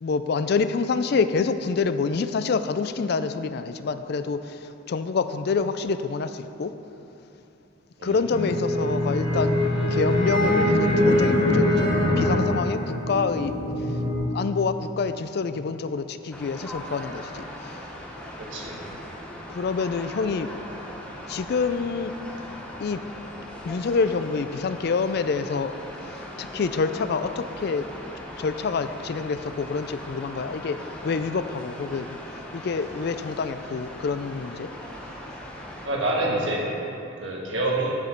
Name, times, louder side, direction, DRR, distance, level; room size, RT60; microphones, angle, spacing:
voice 1, 0.0-6.7 8.0-9.6 9.9-14.0 14.3-17.8 19.5-20.5 21.3-22.1 22.8-23.0 23.6-25.8 26.0-27.9 28.4-32.1 32.5-34.7, left 4 dB, 50° left, 11 dB, 0.3 m, -27 dB
sound 1, 8.3-14.2, left 1 dB, 25° left, 1.2 m, -23 dB
sound 2, 16.3-35.9, equal, 5° left, 0.8 m, -39 dB
voice 2, 18.4-18.8 35.8-36.6 37.2-38.0, right 2 dB, 65° right, -3 dB, 1.5 m, -26 dB
9.4 x 5.1 x 5.7 m, 2.8 s
head